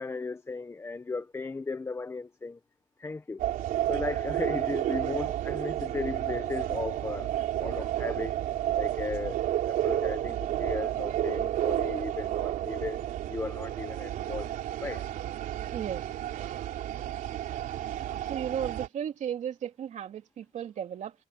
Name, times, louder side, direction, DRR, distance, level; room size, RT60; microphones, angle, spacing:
voice 1, 0.0-2.6 3.0-3.5 3.9-8.4 8.7-9.4 9.6-14.5 14.8-15.1, left 3 dB, 20° left, 1.0 m, -36 dB
sound 1, 3.4-18.9, right 12 dB, 85° right, 3.7 m, -31 dB
voice 2, 18.3-21.1, right 9 dB, 60° right, 2.9 m, -34 dB
cardioid pair, 130°, 14 cm